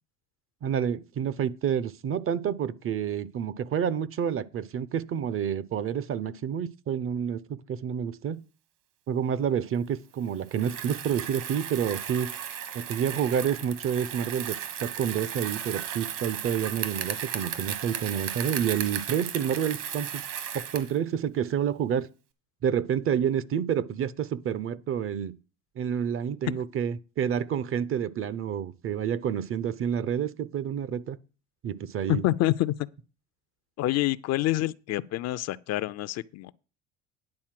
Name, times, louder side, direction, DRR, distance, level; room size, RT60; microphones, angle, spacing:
voice 1, 0.6-8.4 9.1-12.3 12.7-20.2 20.5-22.1 22.6-25.4 25.8-31.2 31.6-32.2, right 8 dB, 35° right, 0.6 m, -29 dB
Bicycle, 10.5-21.0, right 9 dB, 60° right, 1.7 m, -35 dB
voice 2, 32.1-32.7 33.8-36.5, left 15 dB, 45° left, 0.5 m, -27 dB
9.8 x 4.2 x 7.5 m
hypercardioid pair, 80°, 36 cm